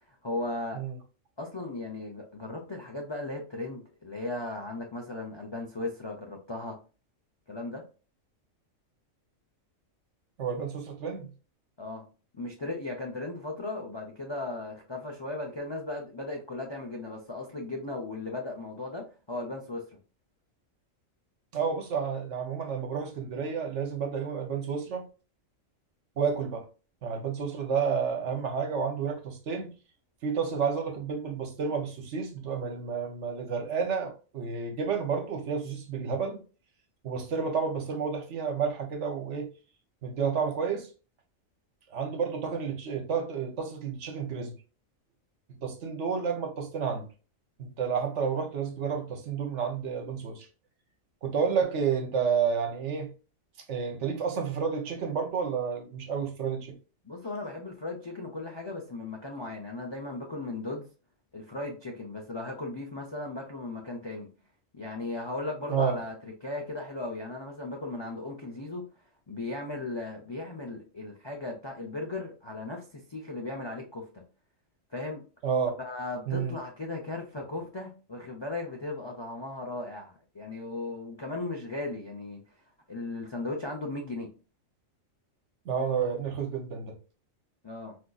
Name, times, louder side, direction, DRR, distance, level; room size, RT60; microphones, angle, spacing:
voice 1, 0.1-0.8 1.4-6.8 7.5-7.8 11.8-12.1 12.3-20.0 57.0-60.9 61.3-64.3 64.7-68.8 69.3-74.2 74.9-75.2 75.8-82.4 82.9-84.3 87.6-88.0, left 2 dB, 40° left, 0.3 m, -37 dB
voice 2, 10.4-11.3 21.5-25.0 26.2-26.6 27.0-29.7 30.2-36.4 37.0-39.5 40.0-40.9 41.9-44.5 45.6-47.1 47.6-50.5 51.2-53.1 53.7-56.7 65.7-66.0 75.4-75.7 76.3-76.5 85.6-86.9, right 6 dB, 65° right, 1.0 m, -30 dB
4.1 x 2.6 x 2.3 m
omnidirectional pair, 1.4 m